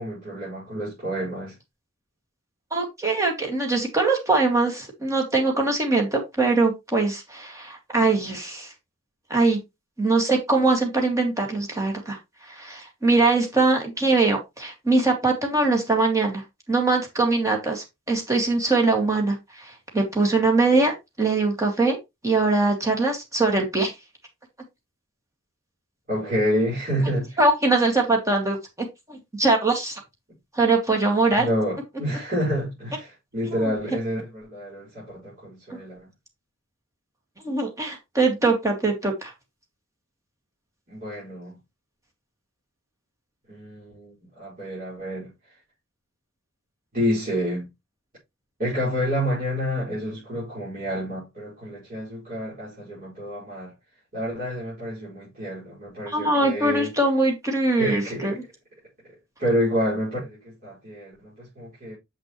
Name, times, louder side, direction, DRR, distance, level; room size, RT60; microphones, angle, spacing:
voice 1, 0.0-1.5 26.1-27.4 31.4-36.1 40.9-41.6 43.5-45.3 46.9-47.7 48.6-53.7 54.1-56.9 57.8-58.4 59.4-61.9, equal, 45° right, 5.2 m, -28 dB
voice 2, 2.7-8.7 9.3-9.6 10.0-12.2 12.5-16.4 16.7-22.0 22.2-23.9 27.4-28.6 29.1-30.0 30.5-31.5 33.5-33.7 35.7-35.8 37.4-39.3 56.1-58.4, right 3 dB, 15° right, 2.2 m, -22 dB
7.6 x 6.0 x 3.1 m
head